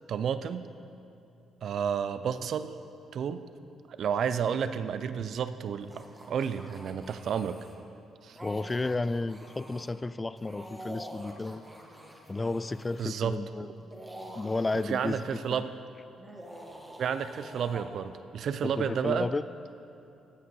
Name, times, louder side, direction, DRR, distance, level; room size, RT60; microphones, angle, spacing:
voice 1, 0.1-0.7 1.6-2.7 3.1-3.4 3.9-7.6 8.2-8.4 13.0-13.7 14.7-15.7 17.0-19.3, right 7 dB, 65° right, 12 dB, 0.5 m, -31 dB
sound 1, 5.8-7.8 8.3-9.9 10.4-13.1 13.8-15.6 16.2-17.8, equal, 15° right, 1.5 m, -47 dB
voice 2, 8.4-11.6 12.3-13.9 14.3-15.6 18.6-19.4, left 3 dB, 20° left, 16 dB, 0.3 m, -32 dB
15.0 x 6.6 x 5.4 m, 2.7 s
cardioid pair, 90°, 0 cm